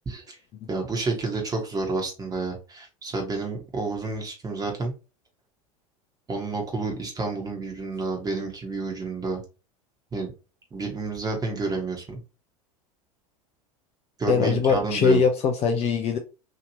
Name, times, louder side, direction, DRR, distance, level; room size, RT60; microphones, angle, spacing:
voice 1, 0.7-4.9 6.3-9.4 10.1-10.3 10.7-12.2 14.2-15.2, right 3 dB, 20° right, 1.2 m, -29 dB
voice 2, 14.3-16.2, left 6 dB, 35° left, 0.5 m, -22 dB
3.0 x 2.8 x 2.9 m
figure-of-eight pair, 80°, 19 cm